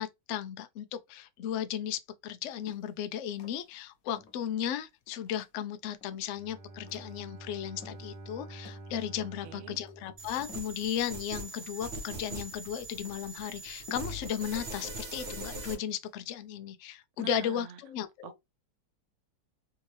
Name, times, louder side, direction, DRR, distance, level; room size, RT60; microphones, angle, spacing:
voice 1, 0.0-18.3, left 10 dB, 80° left, 0.6 m, -35 dB
sound 1, 2.5-8.3 8.6-16.4, left 6 dB, 65° left, 1.1 m, -56 dB
Bowed string instrument, 6.3-11.1, right 2 dB, 25° right, 0.8 m, -48 dB
voice 2, 9.4-9.8 17.2-17.8 18.2-18.4, right 9 dB, 75° right, 0.7 m, -44 dB
sound 2, 10.2-15.7, right 2 dB, 45° right, 1.2 m, -41 dB
3.6 x 2.8 x 3.1 m
omnidirectional pair, 1.8 m